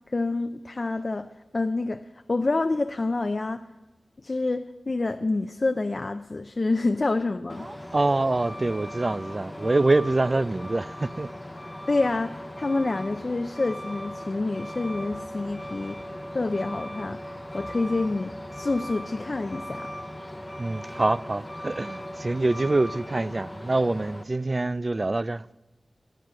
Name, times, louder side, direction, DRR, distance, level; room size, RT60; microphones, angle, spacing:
voice 1, 0.1-3.6 4.2-7.7 11.9-16.1 16.3-19.9, left 3 dB, 50° left, 0.4 m, -28 dB
Truck, 7.5-24.2, left 1 dB, 15° left, 0.8 m, -38 dB
voice 2, 7.6-11.3 20.6-25.4, right 2 dB, 40° right, 0.3 m, -25 dB
12.5 x 9.1 x 6.1 m
wide cardioid pair, 60°, 0 cm